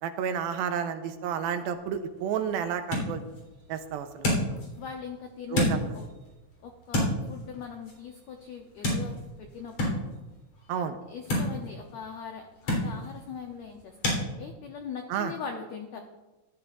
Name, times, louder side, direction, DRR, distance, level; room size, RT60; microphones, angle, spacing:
voice 1, 0.0-3.2 3.7-4.3 5.5-5.8 10.7-11.0 15.1-15.3, right 8 dB, 85° right, 8 dB, 2.6 m, -31 dB
sound 1, 1.7-14.2, left 1 dB, 45° left, 4.6 m, -33 dB
voice 2, 4.8-6.1 6.6-10.0 11.1-16.0, left 6 dB, 85° left, 3 dB, 1.6 m, -41 dB
15.5 x 13.0 x 2.5 m, 1.1 s
omnidirectional pair, 4.3 m